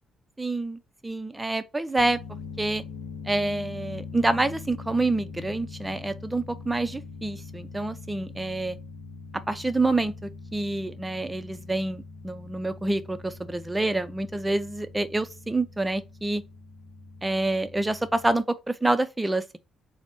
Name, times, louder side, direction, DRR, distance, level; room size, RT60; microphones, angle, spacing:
voice 1, 0.4-2.2 2.6-2.8 3.3-8.8 9.5-16.4 17.2-19.6, right 2 dB, 15° right, 0.5 m, -27 dB
sound 1, 2.0-18.4, left 4 dB, 75° left, 0.6 m, -42 dB
4.2 x 2.1 x 4.4 m
cardioid pair, 90°, 0 cm